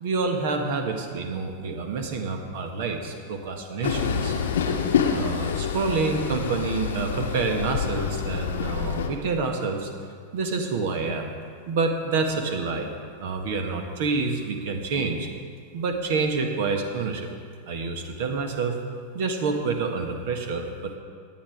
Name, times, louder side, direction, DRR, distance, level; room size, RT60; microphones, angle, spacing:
voice 1, 0.0-4.4 5.1-9.9 10.3-11.3 11.7-12.9 13.2-15.3 15.7-17.3 17.7-18.8 19.1-21.0, right 4 dB, 50° right, 5 dB, 1.5 m, -27 dB
Train, 3.8-9.1, left 7 dB, 60° left, 1.0 m, -27 dB
17.5 x 10.5 x 3.7 m, 2.1 s
figure-of-eight pair, 90°, 0 cm